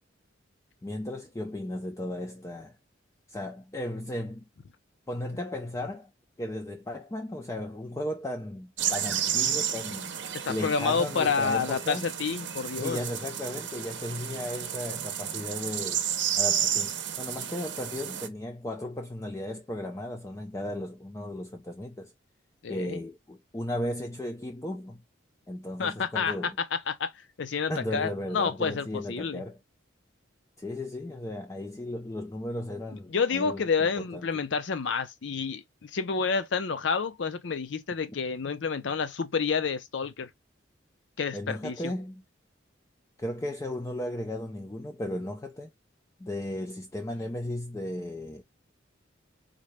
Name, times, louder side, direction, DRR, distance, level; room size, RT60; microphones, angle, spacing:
voice 1, 0.8-2.8 3.3-4.4 5.1-6.1 6.4-10.2 10.5-12.1 12.8-16.1 16.4-22.1 22.7-25.0 25.5-26.6 27.7-29.6 30.6-34.3 41.3-42.2 43.2-45.7 46.2-48.4, left 1 dB, 15° left, 0.3 m, -35 dB
sound 1, 8.8-18.3, right 9 dB, 65° right, 0.7 m, -32 dB
voice 2, 10.4-13.0 22.6-23.0 25.8-26.5 26.9-27.1 27.4-29.4 33.1-40.3 41.2-41.9, left 5 dB, 70° left, 0.5 m, -29 dB
3.7 x 2.2 x 3.0 m
head